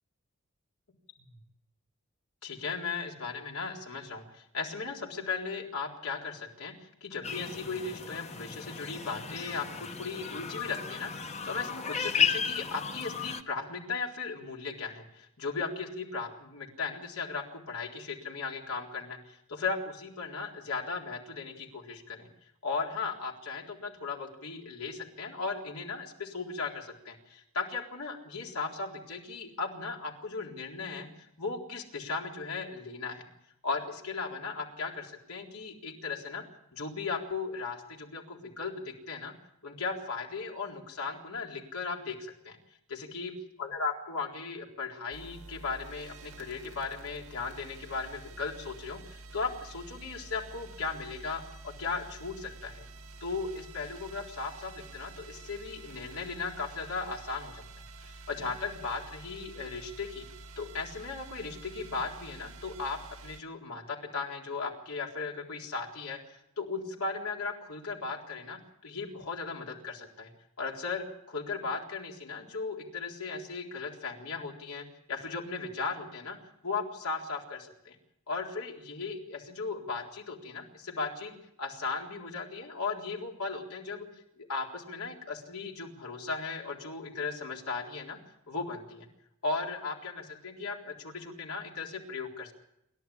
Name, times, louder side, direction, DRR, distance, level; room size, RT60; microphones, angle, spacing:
voice 1, 2.4-22.3 22.6-33.2 33.6-36.4 36.7-39.3 39.6-42.6 42.9-43.3 43.6-52.8 53.2-57.7 58.0-60.3 60.6-70.3 70.6-76.4 76.6-78.0 78.3-84.1 84.4-88.2 88.5-89.1 89.4-92.5, left 4 dB, 85° left, 0 dB, 4.0 m, -37 dB
sound 1, 7.2-13.4, left 7 dB, 30° left, 1.0 m, -34 dB
sound 2, 45.1-63.4, right 3 dB, 90° right, 2.1 m, -49 dB
27.5 x 12.0 x 8.6 m, 0.81 s
head